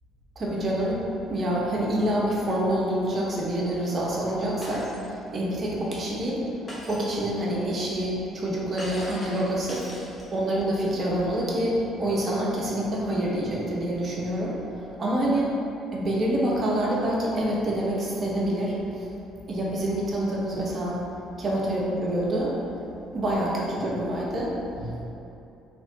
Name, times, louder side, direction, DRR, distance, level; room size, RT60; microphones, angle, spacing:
voice 1, 0.4-1.0 1.3-6.4 6.9-9.8 10.3-15.4 15.9-19.1 19.5-21.0 21.4-22.6 23.1-25.0, right 1 dB, 40° right, -4 dB, 0.5 m, -27 dB
Shatter, 4.6-5.1 6.7-7.2 8.8-10.5, equal, 25° left, 0.9 m, -40 dB
2.7 x 2.0 x 2.9 m, 2.7 s
figure-of-eight pair, 50°, 0 cm